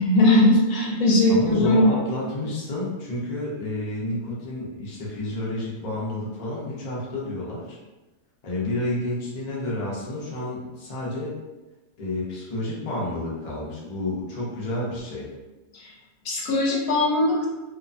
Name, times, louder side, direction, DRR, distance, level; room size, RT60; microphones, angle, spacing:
voice 1, 0.0-1.9 15.7-15.9 16.2-17.4, left 1 dB, 70° left, -3 dB, 1.0 m, -19 dB
voice 2, 1.3-7.8 8.4-11.4 12.0-15.3, left 1 dB, 45° left, -6 dB, 0.5 m, -30 dB
2.8 x 2.1 x 2.5 m, 1.1 s
omnidirectional pair, 1.6 m